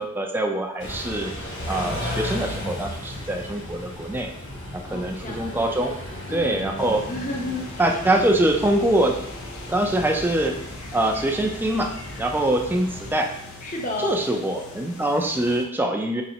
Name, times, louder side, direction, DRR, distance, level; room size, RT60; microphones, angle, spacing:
voice 1, 0.0-1.3 1.7-4.3 4.7-5.9 6.3-7.0 7.8-9.1 9.7-10.6 10.9-13.3 14.0-16.2, right 1 dB, 10° right, 2 dB, 0.3 m, -24 dB
Car / Idling / Accelerating revving vroom, 0.8-13.1, left 1 dB, 60° left, 1.3 m, -35 dB
voice 2, 4.9-5.7 6.3-8.0 13.6-14.2, left 2 dB, 35° left, 0 dB, 0.7 m, -32 dB
sound 1, 6.8-15.7, left 2 dB, 85° left, 0.6 m, -42 dB
4.1 x 3.3 x 2.8 m, 0.79 s
head